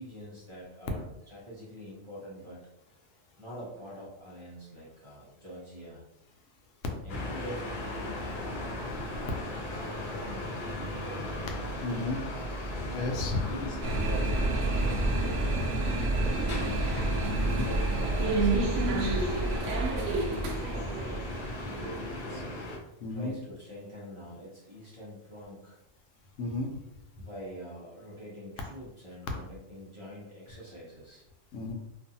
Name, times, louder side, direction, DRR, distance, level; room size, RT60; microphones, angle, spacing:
voice 1, 0.0-2.6 3.4-6.0 7.0-9.0 9.6-12.4 13.5-16.5 17.5-18.9 19.6-20.4 20.7-22.6 23.1-25.8 27.2-31.2, equal, 35° right, -7 dB, 0.6 m, -44 dB
sound 1, 7.1-22.8, left 1 dB, 55° left, 0.6 m, -37 dB
voice 2, 11.8-12.2 12.9-13.4 17.3-17.7 23.0-23.3 26.4-26.7 31.5-31.7, left 2 dB, 90° left, 3 dB, 0.9 m, -33 dB
sound 2, 13.8-22.4, right 2 dB, 80° right, 0.9 m, -29 dB
2.6 x 2.4 x 2.6 m, 0.87 s
omnidirectional pair, 1.3 m